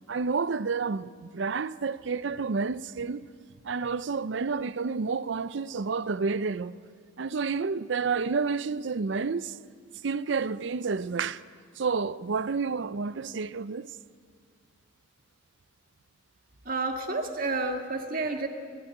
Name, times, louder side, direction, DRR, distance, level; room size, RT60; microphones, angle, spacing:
voice 1, 0.1-3.2 3.6-6.7 7.2-9.6 10.0-11.4 11.8-13.9, right 4 dB, 60° right, 0.5 m, -30 dB
voice 2, 16.7-18.5, right 3 dB, 45° right, 1.8 m, -30 dB
20.0 x 14.0 x 10.0 m
head